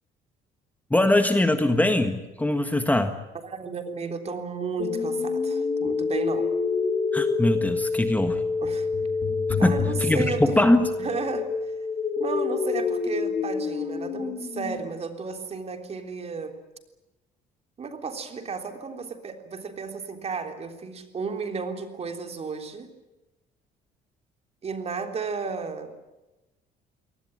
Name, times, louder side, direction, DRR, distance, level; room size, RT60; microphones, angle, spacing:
voice 1, 0.9-3.2 7.1-8.4 9.6-9.7 10.0-10.9, left 1 dB, 10° left, 8 dB, 1.6 m, -22 dB
voice 2, 3.4-6.5 8.6-8.9 9.6-10.4 11.0-11.5 12.2-16.5 17.8-22.9 24.6-25.9, right 5 dB, 40° right, 6 dB, 3.5 m, -33 dB
sound 1, 4.8-14.8, left 4 dB, 45° left, 3.8 m, -27 dB
23.0 x 19.0 x 9.0 m, 1.0 s
cardioid pair, 110°, 17 cm